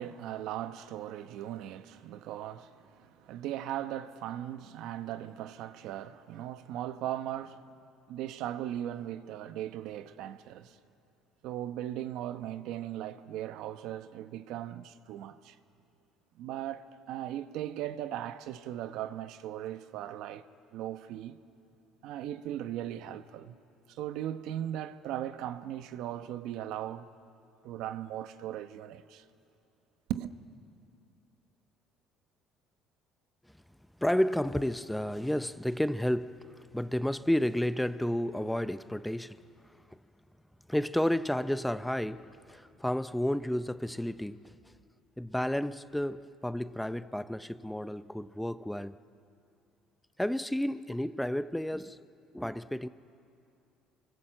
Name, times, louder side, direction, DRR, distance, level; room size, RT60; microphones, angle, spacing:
voice 1, 0.0-7.6 8.1-10.8 11.4-15.5 16.4-20.4 20.7-21.4 22.0-23.6 23.9-27.1 27.6-29.2 30.1-30.3, right 12 dB, 75° right, 1.0 m, -38 dB
voice 2, 34.0-39.4 39.9-40.0 40.7-44.6 45.2-49.0 50.2-52.0 52.3-52.9, left 1 dB, 5° left, 0.7 m, -31 dB
29.0 x 24.5 x 7.6 m
supercardioid pair, 100°, 0 cm